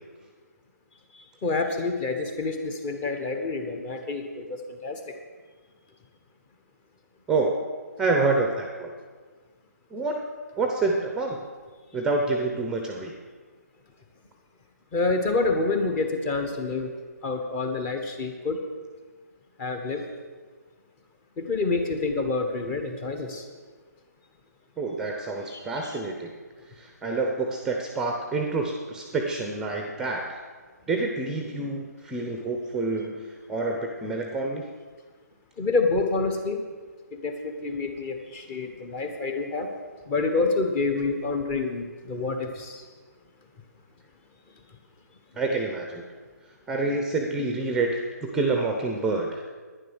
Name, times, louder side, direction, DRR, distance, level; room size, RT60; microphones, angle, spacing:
voice 1, 1.1-5.0 14.9-16.9 17.2-18.6 19.6-20.0 21.4-23.4 25.5-26.0 35.6-36.6 37.1-39.7 40.1-42.8, left 3 dB, 20° left, 5 dB, 1.3 m, -28 dB
voice 2, 7.3-7.7 8.0-8.9 9.9-10.2 10.6-11.4 11.9-13.1 24.8-26.3 26.8-30.4 30.9-34.6 45.4-46.0 46.7-49.4, right 3 dB, 5° right, 3 dB, 0.8 m, -27 dB
10.5 x 10.0 x 6.3 m, 1.4 s
figure-of-eight pair, 150°, 9 cm